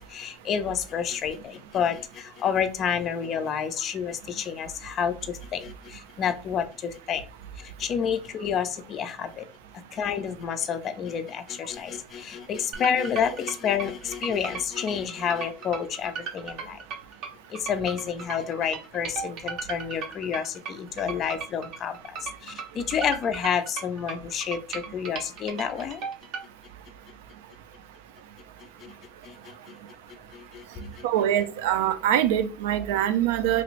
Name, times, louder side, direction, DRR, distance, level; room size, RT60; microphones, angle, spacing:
voice 1, 0.0-7.2 7.6-9.5 9.9-16.8 17.5-26.0 28.8-28.9 29.2-29.7 30.3-31.1, left 7 dB, 30° left, 0.3 m, -29 dB
sound 1, 12.7-26.4, right 6 dB, 40° right, 0.5 m, -37 dB
voice 2, 31.0-33.6, right 11 dB, 90° right, 0.4 m, -24 dB
3.1 x 2.5 x 3.0 m
cardioid pair, 175°, 0 cm